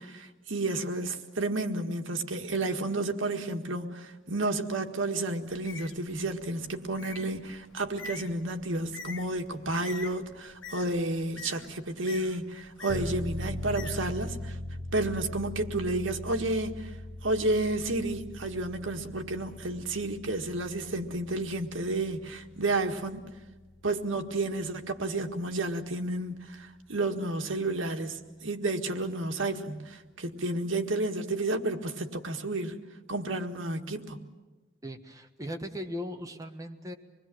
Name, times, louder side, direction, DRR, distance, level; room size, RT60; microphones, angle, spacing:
voice 1, 0.1-14.6 14.9-16.9 17.2-23.2 23.8-32.8 33.1-34.3, right 2 dB, 85° right, 5 dB, 1.8 m, -31 dB
Bird, 5.5-14.6, left 4 dB, 75° left, 1.3 m, -47 dB
sound 1, 12.9-25.4 25.8-25.9, left 1 dB, ahead, 5.0 m, -41 dB
voice 2, 34.8-36.9, equal, 20° right, 4 dB, 1.5 m, -38 dB
26.0 x 21.0 x 7.7 m, 1.2 s
head